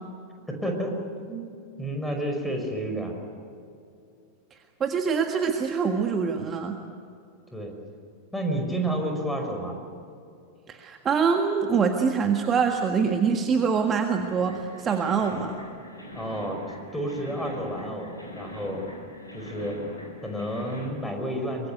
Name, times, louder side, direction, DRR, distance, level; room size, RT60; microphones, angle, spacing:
voice 1, 0.5-1.0 1.3-1.5 1.8-3.2 7.5-7.8 8.3-9.8 16.1-16.6 16.9-18.8 19.3-19.8 20.2-21.7, right 1 dB, 5° left, 2 dB, 5.5 m, -30 dB
voice 2, 4.8-6.8 10.7-15.6, right 6 dB, 25° right, 4 dB, 1.7 m, -24 dB
sound 1, 14.3-20.9, left 1 dB, 85° left, 7.2 m, -41 dB
24.5 x 22.5 x 8.2 m, 2.5 s
figure-of-eight pair, 90°, 0 cm